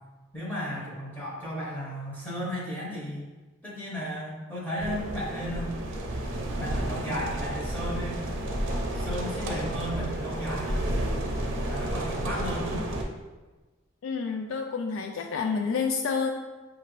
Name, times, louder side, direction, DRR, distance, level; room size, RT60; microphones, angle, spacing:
voice 1, 0.3-3.3 3.6-5.7 6.6-8.2 8.9-10.9 11.7-12.9, equal, 10° left, -6 dB, 0.8 m, -34 dB
sound 1, 4.8-13.0, right 1 dB, 75° right, 0.6 m, -31 dB
voice 2, 14.0-16.3, left 5 dB, 80° left, 3 dB, 0.3 m, -29 dB
5.7 x 2.5 x 3.0 m, 1.2 s
head